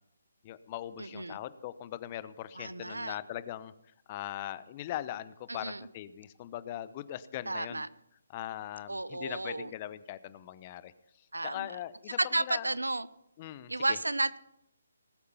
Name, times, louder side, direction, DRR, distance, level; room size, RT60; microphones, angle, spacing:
voice 1, 0.4-3.7 4.1-7.8 8.3-10.9 11.4-12.7 13.4-14.0, left 12 dB, 30° left, 15 dB, 0.8 m, -40 dB
voice 2, 1.0-1.4 2.5-3.2 5.5-5.9 7.5-7.9 8.9-9.7 11.3-11.7 12.2-13.1 13.7-14.4, right 2 dB, 85° right, 18 dB, 0.7 m, -32 dB
19.5 x 8.4 x 5.7 m, 0.77 s
figure-of-eight pair, 145°, 0 cm